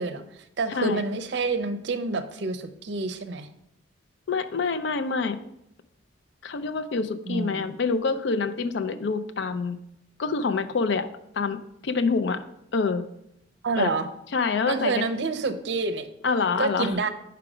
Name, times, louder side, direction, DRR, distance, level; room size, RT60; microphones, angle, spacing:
voice 1, 0.0-3.5 7.3-7.7 13.6-14.1 14.7-16.1 16.6-17.1, right 3 dB, 60° right, 9 dB, 0.5 m, -28 dB
voice 2, 0.7-1.0 4.3-5.4 6.4-9.8 10.2-11.1 11.3-12.4 12.7-13.0 13.8-13.9 14.3-15.0 16.2-16.9, left 4 dB, 65° left, 10 dB, 0.4 m, -26 dB
5.0 x 4.6 x 4.8 m, 0.80 s
head